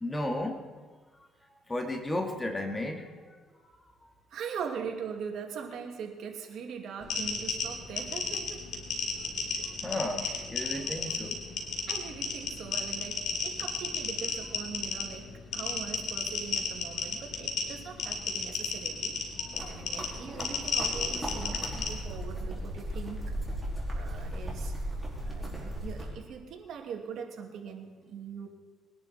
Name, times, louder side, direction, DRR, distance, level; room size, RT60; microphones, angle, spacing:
voice 1, 0.0-0.6 1.7-3.1 3.6-3.7 9.8-11.3 19.4-19.5, left 1 dB, 20° left, 4 dB, 2.1 m, -33 dB
voice 2, 4.3-8.8 10.2-10.4 10.7-11.0 11.9-19.2 19.6-23.3 23.9-24.7 25.3-28.5, right 6 dB, 70° right, 3 dB, 2.3 m, -41 dB
sound 1, 7.0-21.9, left 5 dB, 75° left, 3.1 m, -33 dB
sound 2, 19.5-26.1, equal, ahead, 4.8 m, -36 dB
22.0 x 11.0 x 4.3 m, 1.4 s
cardioid pair, 95°, 0 cm